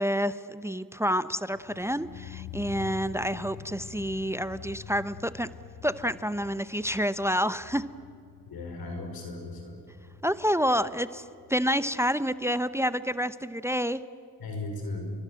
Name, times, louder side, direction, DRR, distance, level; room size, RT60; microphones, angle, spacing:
voice 1, 0.0-5.5 5.8-7.9 10.2-11.2 11.5-14.0, equal, 5° right, 14 dB, 0.9 m, -28 dB
sound 1, 1.4-12.4 12.7-12.8, left 8 dB, 65° left, 1.5 m, -46 dB
voice 2, 8.5-9.8 14.4-15.1, left 2 dB, 85° left, 4 dB, 5.4 m, -36 dB
30.0 x 23.5 x 7.8 m, 2.5 s
supercardioid pair, 50°, 36 cm